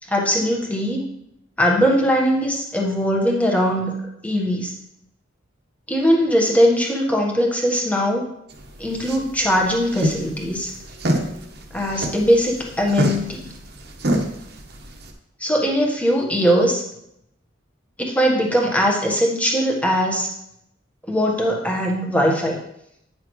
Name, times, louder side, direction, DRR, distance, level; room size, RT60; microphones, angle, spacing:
voice 1, 0.1-1.0 1.6-4.0 4.2-4.7 5.9-8.2 8.8-10.7 11.7-13.5 15.4-16.8 18.0-20.3 21.1-22.6, equal, 10° left, -1 dB, 1.3 m, -20 dB
sound 1, 8.5-15.1, right 1 dB, 55° right, 1.0 m, -27 dB
9.3 x 6.1 x 3.1 m, 0.78 s
head